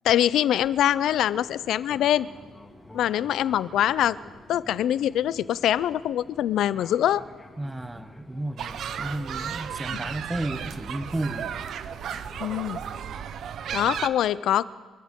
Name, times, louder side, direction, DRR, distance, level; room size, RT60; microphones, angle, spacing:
voice 1, 0.0-2.3 2.9-4.2 4.5-7.2 9.9-10.0 12.4-12.8 13.7-14.6, left 11 dB, 80° left, 18 dB, 0.5 m, -24 dB
Fixed-wing aircraft airplane, 0.6-13.2, left 2 dB, 15° left, 2.2 m, -49 dB
voice 2, 7.6-11.5, right 1 dB, 15° right, 12 dB, 0.8 m, -33 dB
sound 1, 8.6-14.1, right 8 dB, 70° right, 0.7 m, -34 dB
27.0 x 14.0 x 3.7 m, 1.4 s
cardioid pair, 90°, 0 cm